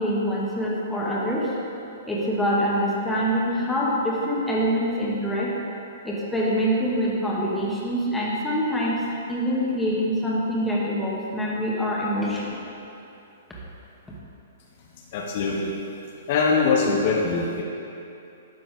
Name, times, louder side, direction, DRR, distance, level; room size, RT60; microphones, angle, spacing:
voice 1, 0.0-1.5 2.1-5.5 6.0-9.0 9.3-12.6, equal, 5° left, -6 dB, 2.1 m, -25 dB
voice 2, 15.1-15.8 16.3-17.6, left 4 dB, 50° left, -2 dB, 1.2 m, -22 dB
11.5 x 7.5 x 3.8 m, 2.8 s
hypercardioid pair, 120°, 0 cm